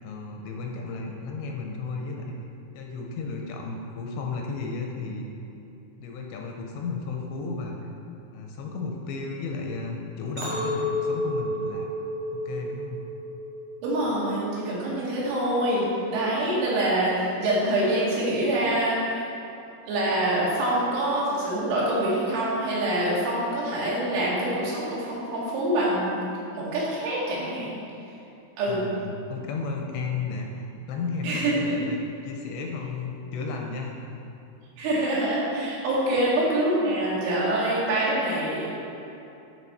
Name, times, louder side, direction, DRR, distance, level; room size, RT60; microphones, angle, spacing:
voice 1, 0.0-2.3 2.8-5.3 6.0-7.8 8.3-11.9 12.3-13.0 28.7-32.0 32.2-34.2, left 4 dB, 85° left, 1 dB, 2.8 m, -34 dB
Chink clink, 10.4-14.7 15.2-15.6, left 1 dB, 50° right, 2.2 m, -32 dB
voice 2, 13.8-19.3 19.9-26.2 26.5-27.8 28.6-28.8 31.2-31.8 34.8-38.7, right 1 dB, 85° right, -6 dB, 4.3 m, -25 dB
12.5 x 5.1 x 4.1 m, 2.8 s
omnidirectional pair, 5.4 m